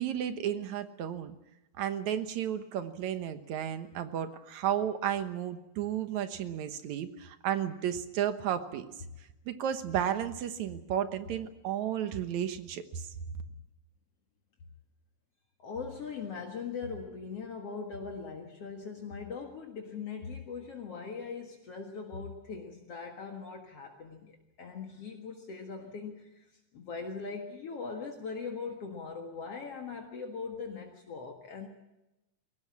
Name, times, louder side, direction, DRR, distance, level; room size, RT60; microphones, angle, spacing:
voice 1, 0.0-1.4 1.8-8.9 9.5-13.1, right 10 dB, 75° right, 9 dB, 2.5 m, -33 dB
voice 2, 15.6-31.7, left 5 dB, 55° left, 2 dB, 2.6 m, -40 dB
22.0 x 18.0 x 8.6 m, 0.96 s
omnidirectional pair, 3.3 m